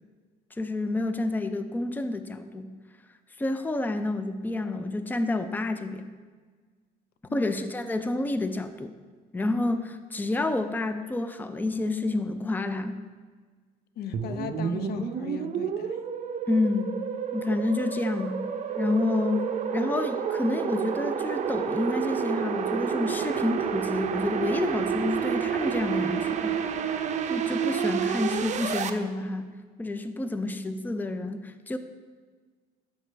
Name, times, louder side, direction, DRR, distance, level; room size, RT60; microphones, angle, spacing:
voice 1, 0.6-2.7 3.4-6.1 7.3-8.9 9.3-13.0 16.5-17.0 17.3-18.4 18.8-26.5 27.3-29.5 29.8-31.8, left 2 dB, 10° left, 0.5 m, -29 dB
voice 2, 14.0-15.9, left 8 dB, 70° left, 0.5 m, -37 dB
sound 1, 14.1-28.9, right 7 dB, 45° right, 0.6 m, -29 dB
9.9 x 6.9 x 3.3 m
cardioid pair, 110°, 17 cm